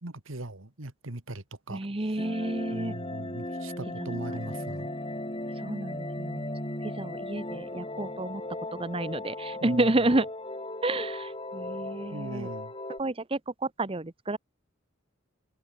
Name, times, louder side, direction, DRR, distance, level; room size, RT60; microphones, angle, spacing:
voice 1, 0.0-1.8 2.7-4.9 9.6-9.9 12.1-12.7, right 1 dB, 80° right, 2.1 m, -39 dB
voice 2, 1.7-3.0 4.3-4.4 5.6-6.5 6.8-8.4 8.7-10.3 10.8-12.5 13.0-14.4, right 2 dB, 25° right, 1.0 m, -30 dB
sound 1, 2.2-13.0, left 1 dB, 25° left, 6.7 m, -37 dB
head